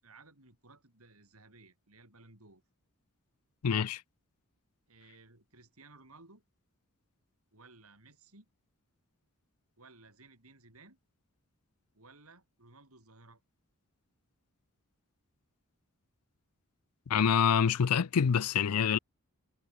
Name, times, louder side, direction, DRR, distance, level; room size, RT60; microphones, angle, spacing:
voice 1, 0.0-2.6 4.9-6.4 7.5-8.5 9.8-11.0 11.9-13.4, right 3 dB, 70° right, 6.1 m, -58 dB
voice 2, 3.6-4.0 17.1-19.0, left 7 dB, 85° left, 0.5 m, -26 dB
head